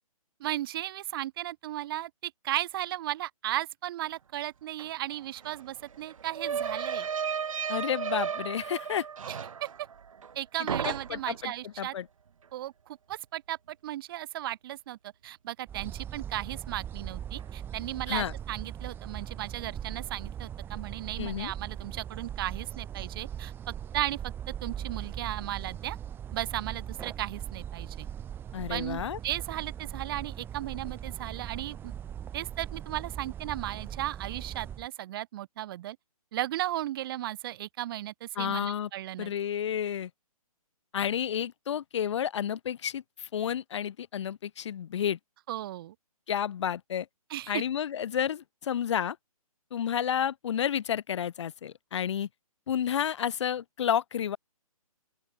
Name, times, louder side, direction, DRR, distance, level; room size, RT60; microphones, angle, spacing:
voice 1, 0.4-7.1 9.3-9.4 9.6-9.7 10.3-11.9 12.5-24.2 24.5-26.0 26.3-28.1 28.7-31.9 32.3-36.0 36.3-39.3 45.5-45.9 47.3-47.6, right 14 dB, 35° right, 3.2 m, -35 dB
sound 1, 4.8-4.9 5.1-10.4 10.7-11.4, right 7 dB, 60° right, 5.1 m, -34 dB
voice 2, 7.7-9.1 10.8-12.1 18.1-18.3 21.2-21.5 28.5-29.2 38.4-38.9 39.2-40.1 40.9-45.2 46.3-47.1 47.5-49.2 49.7-52.3 52.7-54.4, left 9 dB, 50° left, 1.7 m, -31 dB
sound 2, 15.7-34.9, right 9 dB, 10° right, 1.3 m, -40 dB
open air
figure-of-eight pair, 140°, 19 cm